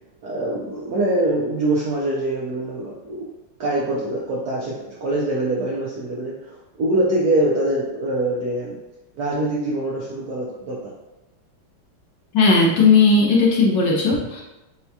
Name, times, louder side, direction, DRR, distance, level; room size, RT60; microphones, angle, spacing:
voice 1, 0.2-3.3 3.6-8.8 9.1-10.9, right 1 dB, 75° right, -5 dB, 0.9 m, -24 dB
voice 2, 12.3-14.4, left 4 dB, 70° left, -2 dB, 1.2 m, -16 dB
5.6 x 2.2 x 2.8 m, 1.0 s
omnidirectional pair, 2.3 m